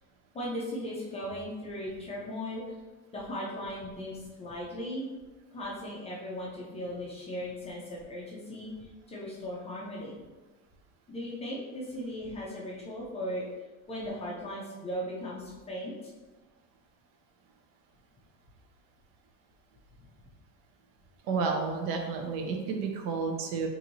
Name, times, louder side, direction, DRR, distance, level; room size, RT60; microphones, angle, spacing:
voice 1, 0.3-2.8 3.1-5.0 5.5-10.2 11.1-13.5 13.9-16.1, equal, 15° left, -5 dB, 0.4 m, -37 dB
voice 2, 21.2-23.7, right 4 dB, 60° right, 3 dB, 0.7 m, -31 dB
3.9 x 2.7 x 3.0 m, 1.2 s
cardioid pair, 155°, 39 cm